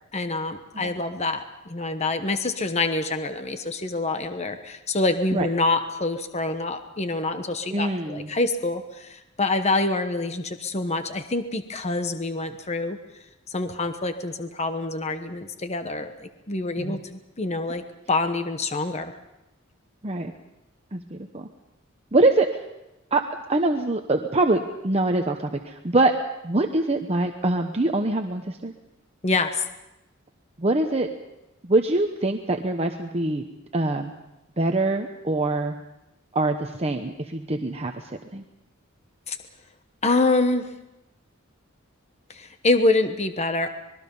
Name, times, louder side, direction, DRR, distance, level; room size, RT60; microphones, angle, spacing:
voice 1, 0.1-13.0 13.5-17.8 18.1-19.2 29.2-29.7 39.3-39.4 40.0-40.7 42.3-43.7, left 2 dB, 35° left, 8 dB, 1.1 m, -26 dB
voice 2, 7.7-8.3 16.8-17.0 20.0-20.3 20.9-21.5 22.1-22.5 23.1-23.2 23.5-26.1 26.4-28.7 30.6-31.1 31.6-33.4 33.7-34.1 34.6-35.7 36.3-38.0 38.3-38.4, right 2 dB, 30° right, 4 dB, 1.0 m, -24 dB
25.5 x 21.5 x 5.5 m, 0.95 s
head